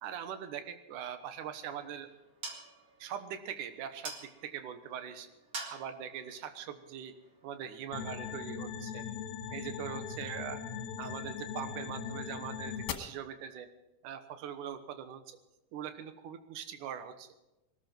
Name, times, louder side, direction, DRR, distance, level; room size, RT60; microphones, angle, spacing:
voice 1, 0.0-2.1 3.0-5.3 5.7-7.2 7.4-9.0 9.5-10.6 11.0-13.7 14.0-15.4 15.7-17.3, right 9 dB, 65° right, 9 dB, 2.1 m, -42 dB
sound 1, 1.2-7.7, right 3 dB, 40° right, 1.4 m, -48 dB
sound 2, 7.9-12.9, left 7 dB, 70° left, 3.1 m, -40 dB
21.5 x 13.0 x 4.5 m, 0.95 s
omnidirectional pair, 4.9 m